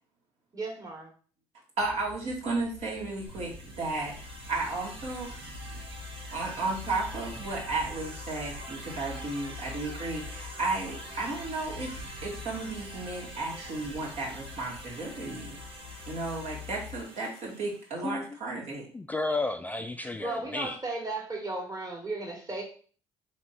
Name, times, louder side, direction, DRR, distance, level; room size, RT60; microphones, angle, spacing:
voice 1, 0.5-1.1 20.2-22.6, right 2 dB, 30° right, 0 dB, 1.7 m, -35 dB
sound 1, 1.8-17.0, left 8 dB, 75° left, 0.7 m, -47 dB
voice 2, 1.8-4.2 4.5-5.3 6.3-15.6 16.1-18.9, right 3 dB, 65° right, -3 dB, 1.9 m, -34 dB
sound 2, 2.9-18.0, right 1 dB, 45° right, 1.8 m, -45 dB
Bird / Wind, 3.3-16.0, right 2 dB, 80° right, 2.0 m, -49 dB
voice 3, 18.9-20.8, left 2 dB, 15° left, 7 dB, 0.3 m, -32 dB
3.6 x 3.1 x 4.3 m, 0.43 s
supercardioid pair, 65°, 12 cm